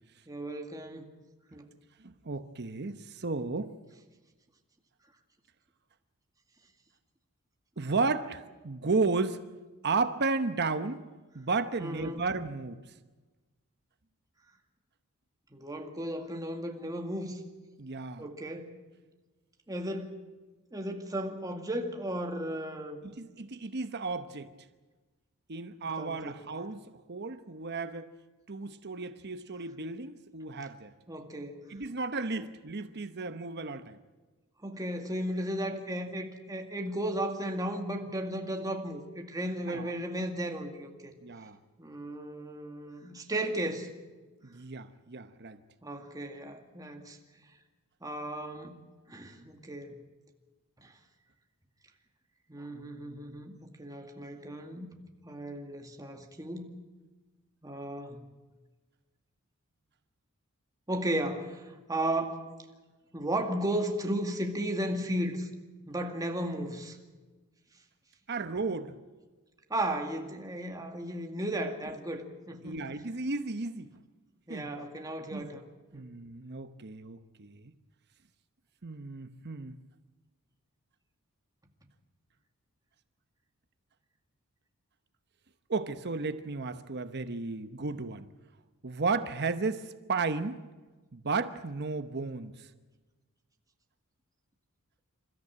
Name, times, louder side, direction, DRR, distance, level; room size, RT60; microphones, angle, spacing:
voice 1, 0.3-1.1 1.5-1.7 11.8-12.2 15.5-17.4 18.2-18.8 19.7-20.2 20.7-23.1 26.0-26.4 31.1-31.6 34.6-41.1 41.8-43.9 45.8-47.2 48.0-48.8 49.1-50.0 50.8-50.9 52.5-54.9 55.2-56.8 57.6-58.2 60.9-62.4 63.1-65.5 65.9-67.0 69.7-72.8 74.5-75.6 75.9-76.1, right 1 dB, 15° right, 2.1 m, -35 dB
voice 2, 2.0-3.7 7.8-9.4 9.8-11.0 11.3-12.8 17.8-18.2 23.0-24.5 25.5-26.8 27.1-28.1 28.5-30.9 31.7-34.0 39.7-40.0 41.2-41.6 44.4-45.6 68.3-68.9 72.6-73.9 74.5-74.7 75.3-75.5 75.9-77.7 78.8-79.8 85.7-88.3 88.8-90.6 91.1-92.7, right 3 dB, 50° right, 0.9 m, -33 dB
28.0 x 13.5 x 8.7 m
head